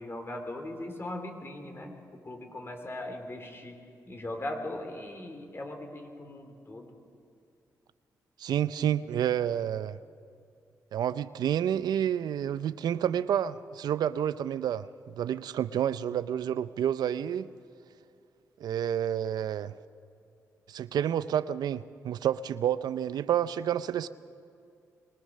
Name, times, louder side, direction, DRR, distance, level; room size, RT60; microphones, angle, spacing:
voice 1, 0.0-2.0 2.2-3.8 4.1-7.0, left 1 dB, 35° left, 4 dB, 3.5 m, -39 dB
voice 2, 8.4-10.0 10.9-14.9 15.2-17.5 18.6-19.7 20.7-24.1, right 10 dB, 80° right, 15 dB, 0.5 m, -29 dB
23.0 x 18.5 x 6.6 m, 2.5 s
cardioid pair, 55°, 7 cm